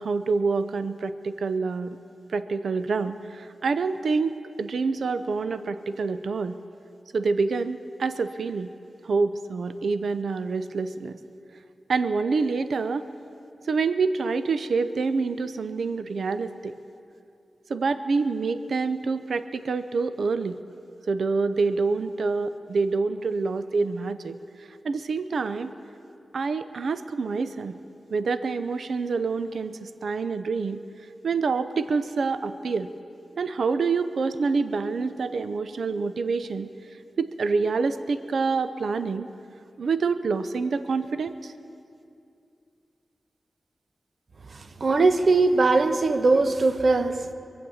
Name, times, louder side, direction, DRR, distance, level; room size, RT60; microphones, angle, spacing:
voice 1, 0.0-2.0 2.3-6.6 7.1-8.7 9.1-11.2 11.9-13.1 13.7-16.7 17.7-20.6 21.1-24.4 24.8-25.7 26.3-27.8 28.1-30.8 31.2-32.9 33.4-36.7 37.2-39.3 39.8-41.5, right 4 dB, 80° right, 12 dB, 0.5 m, -27 dB
voice 2, 44.8-47.3, right 3 dB, 65° right, 8 dB, 0.9 m, -20 dB
22.5 x 7.9 x 7.1 m, 2.5 s
cardioid pair, 45°, 0 cm